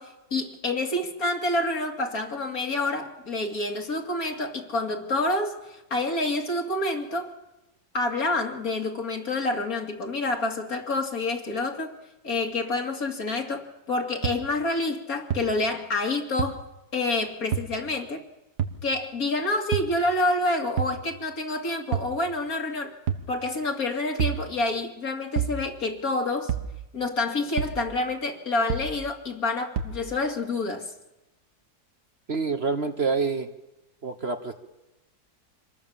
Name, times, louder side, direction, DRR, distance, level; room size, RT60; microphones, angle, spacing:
voice 1, 0.0-7.3 7.9-11.9 12.2-16.6 16.9-18.2 18.8-22.9 23.3-26.5 26.9-30.9, left 2 dB, 60° left, 3 dB, 2.9 m, -28 dB
sound 1, 14.2-14.3 15.3-15.4 16.4-16.5 17.5-17.7 18.6-18.8 19.7-19.9 20.8-21.0 21.9-22.1 23.1-23.3 24.2-24.4 25.4-25.6 26.5-26.7 27.6-27.8 28.7-28.9 29.8-30.0, right 8 dB, 80° right, 2.0 m, -27 dB
voice 2, 32.3-33.5 34.0-34.5, right 4 dB, 40° right, 7 dB, 1.4 m, -27 dB
26.5 x 20.0 x 7.2 m, 0.97 s
omnidirectional pair, 1.7 m